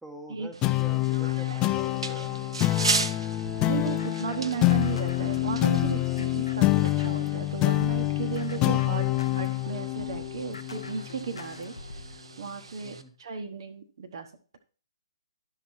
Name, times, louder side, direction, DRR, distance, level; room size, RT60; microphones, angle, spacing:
voice 1, 0.0-2.5 8.8-9.3 12.8-13.1, right 1 dB, 5° right, 1 dB, 1.3 m, -46 dB
sound 1, 0.5-13.0, right 4 dB, 65° right, 0.8 m, -37 dB
sound 2, 0.6-11.4, left 18 dB, 20° left, 0.3 m, -26 dB
sound 3, 3.4-7.4 7.8-12.2, left 2 dB, 70° left, 0.7 m, -44 dB
voice 2, 3.7-11.7 12.0-14.6, right 6 dB, 50° right, 6 dB, 1.1 m, -35 dB
11.5 x 5.9 x 4.4 m, 0.38 s
figure-of-eight pair, 130°, 3 cm